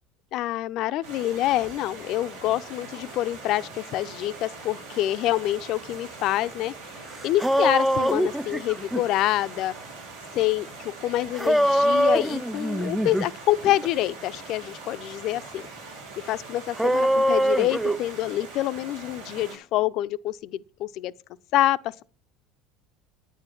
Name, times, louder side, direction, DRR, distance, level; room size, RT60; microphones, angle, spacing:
voice 1, 0.3-6.7 7.2-9.7 10.3-15.7 16.2-21.1 21.5-22.0, left 14 dB, 55° left, 0.5 m, -26 dB
Stream, 1.0-19.6, right 3 dB, 80° right, 5.1 m, -42 dB
sound 1, 7.0-7.1 7.2-9.0 11.3-13.3 13.7-13.9 16.8-18.0, equal, 5° right, 0.5 m, -23 dB
10.0 x 9.2 x 5.7 m
hypercardioid pair, 70°, 0 cm